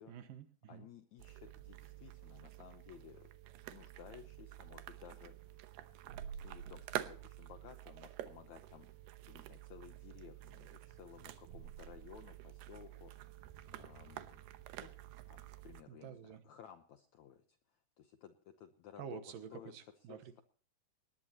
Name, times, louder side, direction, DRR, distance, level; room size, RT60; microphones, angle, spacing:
voice 1, 0.1-0.9 15.9-16.4 19.0-20.2, right 8 dB, 70° right, 9 dB, 2.7 m, -49 dB
voice 2, 0.7-3.3 3.7-5.6 6.4-14.4 14.8-14.9 15.3-19.2 19.5-19.7 20.1-20.4, left 9 dB, 75° left, 8 dB, 1.7 m, -57 dB
sound 1, 1.2-15.8, right 12 dB, 85° right, 2.9 m, -49 dB
20.5 x 18.0 x 2.9 m, 0.43 s
omnidirectional pair, 4.4 m